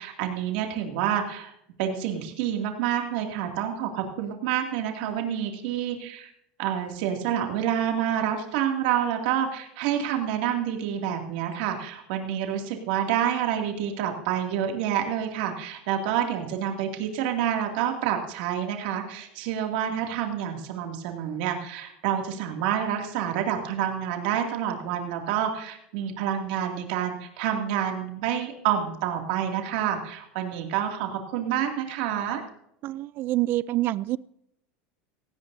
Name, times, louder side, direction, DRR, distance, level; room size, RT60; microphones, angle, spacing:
voice 1, 0.0-1.5 1.8-6.3 6.6-32.4, right 9 dB, 70° right, 3 dB, 2.5 m, -28 dB
voice 2, 32.8-34.2, right 16 dB, 45° right, 20 dB, 0.4 m, -26 dB
17.5 x 16.0 x 2.7 m, 0.77 s
supercardioid pair, 140°, 5 cm